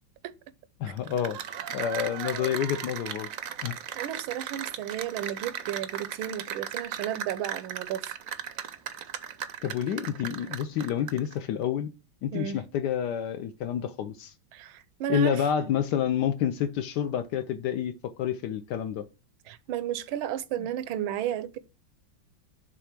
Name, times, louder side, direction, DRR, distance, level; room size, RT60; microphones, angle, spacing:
voice 1, 0.8-1.4 1.7-3.3 3.6-3.8 9.6-11.9 12.2-14.3 15.1-19.1, left 9 dB, 70° left, 1.1 m, -29 dB
Cheering / Applause, 1.0-11.3, right 9 dB, 70° right, 0.8 m, -37 dB
voice 2, 3.9-8.1 12.3-12.6 14.5-15.7 19.5-21.6, right 10 dB, 90° right, 1.5 m, -33 dB
6.9 x 3.7 x 5.9 m
omnidirectional pair, 2.2 m